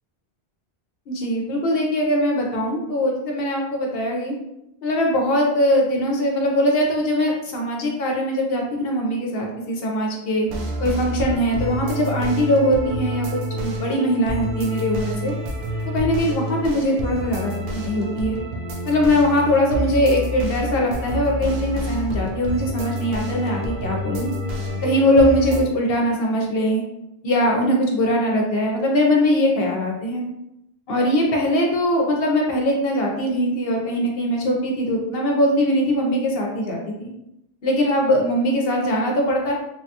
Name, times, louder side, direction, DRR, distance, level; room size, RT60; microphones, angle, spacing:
voice 1, 1.1-4.3 4.8-10.5 10.8-15.3 15.9-18.4 18.8-24.3 24.8-26.8 27.2-30.2 30.9-37.1 37.6-39.5, equal, 65° left, 0 dB, 0.8 m, -21 dB
sound 1, 10.5-25.6, equal, 70° right, 0.8 m, -28 dB
3.2 x 2.2 x 2.7 m, 0.85 s
omnidirectional pair, 1.1 m